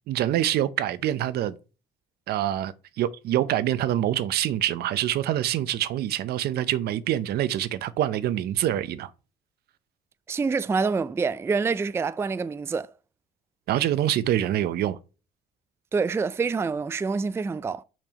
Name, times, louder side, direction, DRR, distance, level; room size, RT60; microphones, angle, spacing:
voice 1, 0.1-1.6 2.3-9.1 13.7-15.0, right 12 dB, 70° right, 0.7 m, -25 dB
voice 2, 10.3-12.9 15.9-17.8, right 4 dB, 15° right, 0.4 m, -26 dB
6.0 x 4.5 x 5.1 m
cardioid pair, 110°, 17 cm